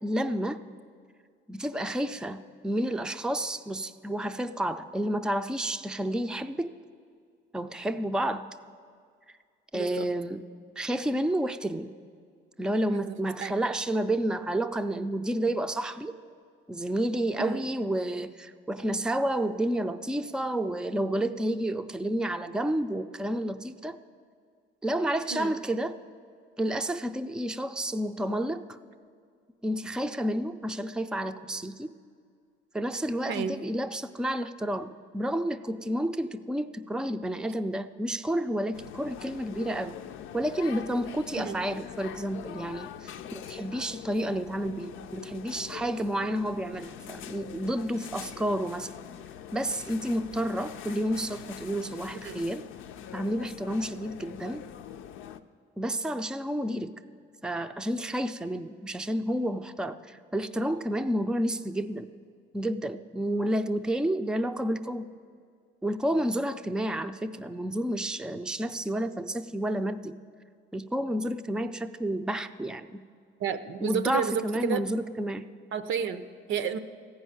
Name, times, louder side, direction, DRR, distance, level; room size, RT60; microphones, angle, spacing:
voice 1, 0.0-0.6 1.5-6.7 7.5-8.5 9.7-10.4 10.8-11.9 12.6-16.1 16.7-24.0 24.8-26.0 26.6-28.8 29.6-31.9 32.7-40.0 40.3-48.9 49.5-52.6 53.1-54.6 55.8-56.9 57.4-62.1 62.5-65.1 65.8-70.2 70.7-73.0 73.8-75.5, right 1 dB, 5° right, 8 dB, 0.4 m, -30 dB
voice 2, 9.7-10.1 12.9-13.6 17.4-17.7 25.3-25.6 33.3-33.6 41.4-41.6 52.2-52.5 73.4-74.8 75.7-76.8, right 7 dB, 75° right, 10 dB, 0.7 m, -32 dB
sound 1, 38.7-55.4, left 10 dB, 85° left, 0.5 m, -44 dB
14.5 x 5.5 x 9.4 m, 2.1 s
cardioid pair, 90°, 20 cm